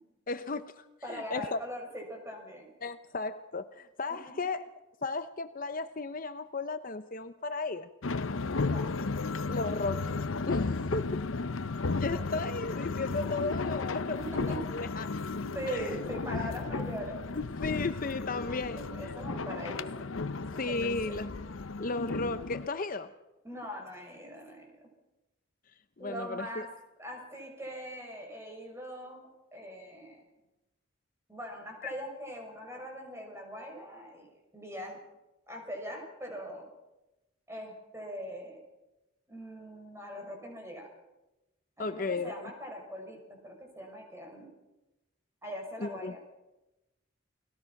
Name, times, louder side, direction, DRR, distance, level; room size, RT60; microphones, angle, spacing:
voice 1, 0.3-1.6 2.8-4.7 5.0-7.9 9.5-11.3 11.9-15.2 15.7-16.0 17.3-19.3 20.5-21.3 21.8-23.1 26.0-26.7 31.8-31.9 41.8-42.5 45.8-46.2, left 3 dB, 40° left, 0.7 m, -35 dB
voice 2, 1.0-2.7 4.1-4.2 8.7-8.9 12.0-12.2 14.3-14.6 15.5-17.2 18.3-20.1 20.5-21.2 23.4-24.8 26.0-26.7 27.0-30.2 31.3-35.0 35.5-36.7 37.5-38.6 39.3-40.9 41.8-44.5 45.4-46.3, equal, 15° right, 6.4 m, -41 dB
sound 1, 8.0-22.7, left 3 dB, 75° left, 0.8 m, -34 dB
30.0 x 20.5 x 5.9 m
head